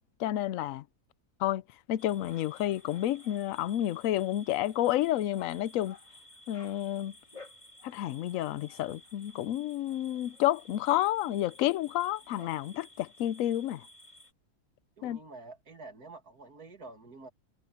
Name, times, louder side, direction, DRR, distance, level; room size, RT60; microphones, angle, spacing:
voice 1, 0.2-0.8 1.4-1.6 1.9-6.0 6.5-7.1 7.8-13.8 15.0-15.2, left 13 dB, 70° left, 0.9 m, -30 dB
sound 1, 2.0-14.3, left 1 dB, 30° left, 3.3 m, -54 dB
voice 2, 15.0-17.3, right 3 dB, 90° right, 3.2 m, -48 dB
omnidirectional pair, 1.5 m